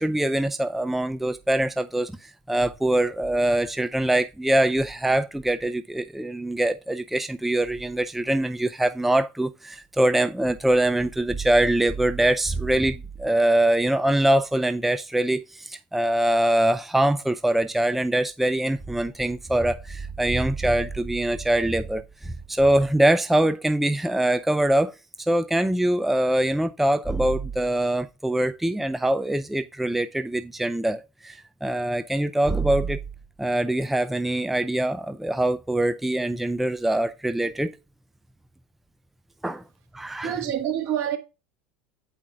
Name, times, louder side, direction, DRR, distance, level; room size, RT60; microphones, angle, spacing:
voice 1, 0.0-33.0 33.4-37.7 39.4-39.6 39.9-40.3, right 1 dB, 5° right, 0.4 m, -23 dB
voice 2, 40.2-41.2, right 10 dB, 55° right, 1.6 m, -26 dB
8.3 x 5.0 x 3.7 m
hypercardioid pair, 80°, 6 cm